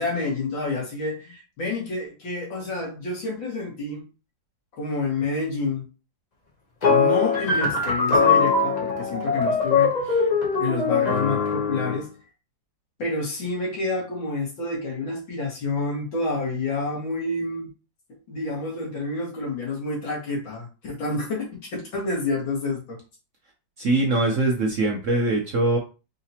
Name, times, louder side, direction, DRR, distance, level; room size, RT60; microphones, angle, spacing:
voice 1, 0.0-4.1 4.7-5.9 6.9-10.3 10.6-12.1 13.0-17.7 18.3-23.0, left 3 dB, 85° left, -3 dB, 2.6 m, -29 dB
sound 1, 6.8-12.0, left 5 dB, 50° left, 0.5 m, -21 dB
voice 2, 23.8-25.8, right 2 dB, 60° right, 1 dB, 0.8 m, -22 dB
4.9 x 2.9 x 2.8 m, 0.31 s
omnidirectional pair, 2.1 m